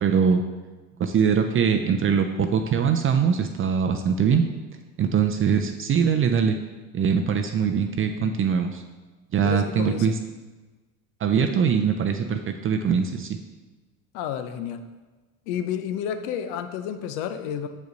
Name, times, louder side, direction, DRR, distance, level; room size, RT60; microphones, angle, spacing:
voice 1, 0.0-0.4 1.0-4.4 5.0-6.6 6.9-8.8 9.3-10.2 11.2-13.3, right 7 dB, 30° right, 6 dB, 0.5 m, -22 dB
voice 2, 9.4-10.1 14.1-14.8 15.5-17.7, left 9 dB, 70° left, 9 dB, 0.8 m, -30 dB
6.8 x 5.2 x 4.0 m, 1.2 s
supercardioid pair, 90°, 42 cm